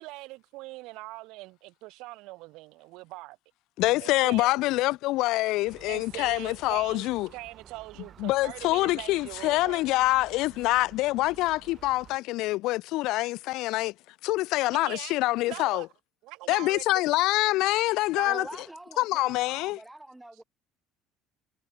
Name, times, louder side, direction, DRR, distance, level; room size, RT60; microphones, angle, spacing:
voice 1, 0.0-3.4 4.0-4.6 5.9-10.0 14.8-15.2 15.4-15.9 16.2-16.8 18.1-18.4, right 21 dB, 75° right, 6.6 m, -42 dB
voice 2, 3.8-7.3 8.2-13.9 14.2-15.9 16.5-18.4 19.0-19.8, left 19 dB, 70° left, 0.4 m, -25 dB
Gull seagull, 5.6-12.2, right 8 dB, 35° right, 5.5 m, -52 dB
voice 3, 18.2-20.4, right 1 dB, 5° right, 4.5 m, -43 dB
cardioid pair, 130°, 0 cm